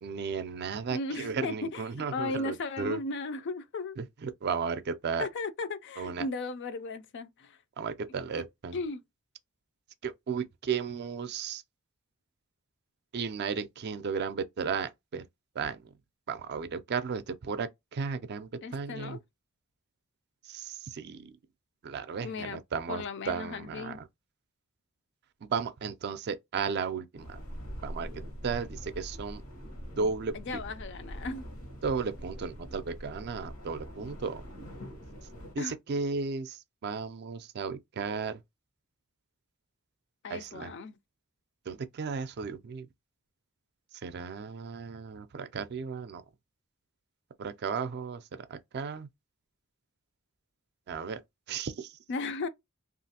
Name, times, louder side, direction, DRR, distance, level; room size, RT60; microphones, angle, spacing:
voice 1, 0.0-3.0 4.0-5.3 6.0-6.3 7.8-8.8 10.0-11.6 13.1-15.2 15.6-15.9 16.3-19.2 20.4-21.3 21.8-24.1 25.4-27.4 27.8-28.1 28.4-29.4 30.0-30.3 31.8-34.4 35.5-38.4 40.3-40.7 41.7-42.9 44.0-46.2 47.4-48.2 48.5-49.1 50.9-51.2 51.5-51.9, right 5 dB, 50° right, 0.4 m, -34 dB
voice 2, 0.9-4.0 5.2-7.6 8.7-9.0 18.6-19.2 22.2-22.6 22.9-24.0 30.3-31.4 35.6-35.7 40.2-41.0 52.1-52.5, left 3 dB, 60° left, 0.4 m, -36 dB
sound 1, 27.2-35.6, equal, 80° left, 1.1 m, -43 dB
3.1 x 2.4 x 2.7 m
head